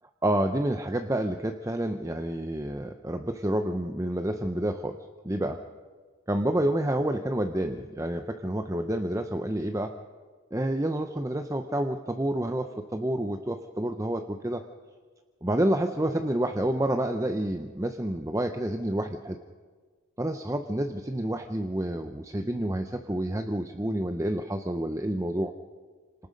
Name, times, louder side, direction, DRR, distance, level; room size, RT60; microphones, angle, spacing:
voice 1, 0.2-5.0 5.2-5.6 6.3-9.9 10.5-14.6 15.4-19.4 20.2-25.5, right 1 dB, 15° right, 6 dB, 0.7 m, -29 dB
27.5 x 19.0 x 5.2 m, 1.5 s
head